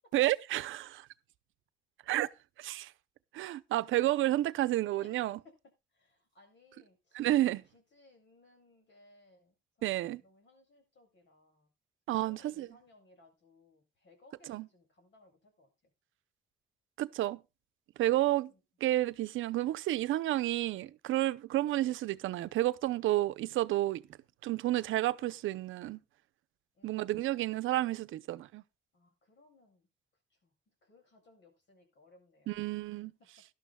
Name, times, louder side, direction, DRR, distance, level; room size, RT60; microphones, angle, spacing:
voice 1, 0.1-1.1 2.1-2.3 2.7-2.9 3.3-5.4 7.1-7.6 9.8-10.2 12.1-12.7 14.5-14.7 17.0-17.4 18.0-18.5 18.8-24.0 24.4-26.0 26.8-28.6 32.5-33.1, right 15 dB, 80° right, 0.7 m, -30 dB
voice 2, 5.0-5.5 5.9-7.2 7.7-11.7 12.1-15.9 18.5-18.6 21.5-21.7 26.7-27.3 28.9-29.9 30.3-30.5 30.8-32.5, left 2 dB, 65° left, 7.9 m, -63 dB
18.0 x 12.0 x 2.3 m
cardioid pair, 90°, 20 cm